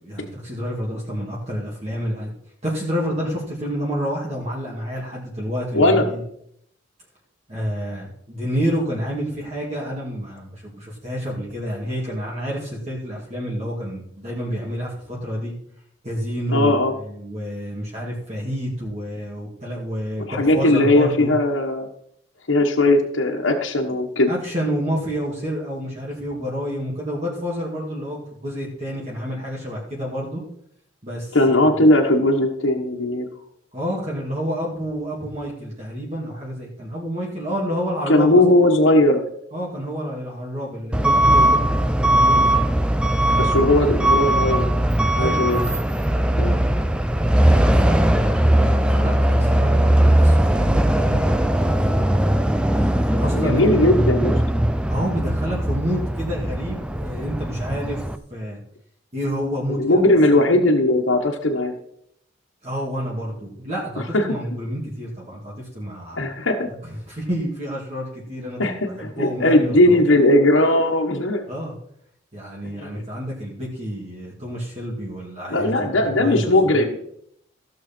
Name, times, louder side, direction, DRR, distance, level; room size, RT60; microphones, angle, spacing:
voice 1, 0.0-2.3 2.6-6.2 7.5-15.5 16.0-21.3 24.3-30.4 31.0-31.7 33.7-38.4 39.5-42.5 43.2-43.5 45.2-45.7 47.4-51.9 52.7-53.8 54.9-58.0 58.3-58.6 59.1-60.0 60.3-60.5 62.6-66.3 66.8-68.6 68.8-70.0 71.5-71.7 72.3-76.8, equal, 35° right, -4 dB, 2.4 m, -29 dB
voice 2, 5.7-6.0 16.5-16.9 20.3-21.9 22.5-24.3 31.3-33.3 38.1-39.2 41.4-41.5 43.4-44.8 45.2-45.6 46.4-46.6 53.3-54.4 59.8-61.7 64.1-64.3 66.2-66.7 68.6-71.5 72.6-72.9 75.5-77.0, left 1 dB, 80° left, 0 dB, 1.4 m, -18 dB
Truck / Alarm, 40.9-58.2, right 1 dB, 5° right, 0.4 m, -19 dB
15.5 x 6.5 x 4.5 m, 0.70 s
head